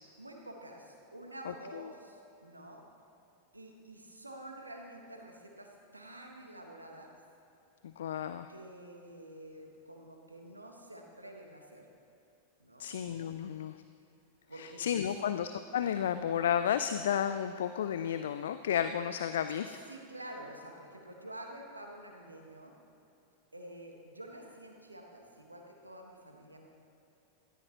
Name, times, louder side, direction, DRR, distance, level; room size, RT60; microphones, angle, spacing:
voice 1, 0.2-2.8 3.5-7.1 8.5-11.9 12.6-12.9 14.5-14.8 15.2-15.4 19.9-22.7 23.5-26.7, right 1 dB, 85° right, 2 dB, 1.6 m, -49 dB
voice 2, 7.8-8.5 12.8-13.8 14.6-19.8, left 9 dB, 60° left, 11 dB, 0.4 m, -32 dB
17.5 x 14.0 x 3.1 m, 2.8 s
figure-of-eight pair, 90°, 0 cm